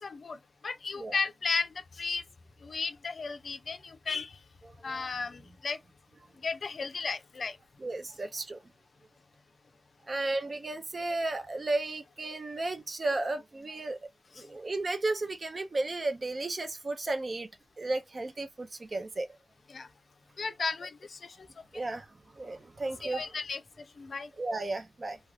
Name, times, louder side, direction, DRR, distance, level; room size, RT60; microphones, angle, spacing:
voice 1, 0.0-2.2 2.6-4.4 4.8-5.8 6.4-7.6 19.7-19.9 20.4-21.4 23.0-23.6 24.0-24.3, left 4 dB, 65° left, 0.4 m, -34 dB
voice 2, 4.6-5.1 7.8-8.6 10.1-14.0 14.4-17.5 17.8-19.3 21.7-22.1 22.4-23.3 24.4-25.2, right 2 dB, 40° right, 0.4 m, -34 dB
2.3 x 2.3 x 3.1 m
wide cardioid pair, 120°, 0 cm